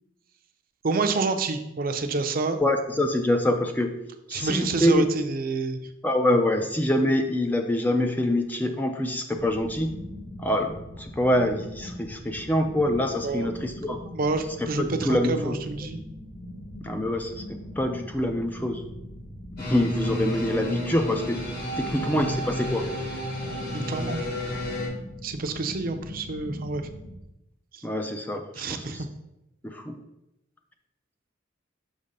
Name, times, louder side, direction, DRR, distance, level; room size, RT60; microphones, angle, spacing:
voice 1, 0.8-2.6 4.3-5.8 13.2-13.5 14.1-16.0 23.7-24.2 25.2-26.9 27.7-27.8 28.5-29.1, right 3 dB, 45° right, 7 dB, 0.5 m, -28 dB
voice 2, 2.6-3.9 4.3-5.1 6.0-9.9 10.4-14.0 14.6-15.6 16.8-18.8 19.6-21.4 21.8-22.9 27.8-28.4 28.7-29.0 29.6-29.9, left 1 dB, 10° left, 5 dB, 0.4 m, -25 dB
sound 1, 9.4-27.2, left 1 dB, 80° left, 1.1 m, -41 dB
sound 2, 19.6-24.9, equal, 50° left, 1.7 m, -31 dB
6.5 x 3.1 x 5.3 m, 0.88 s
head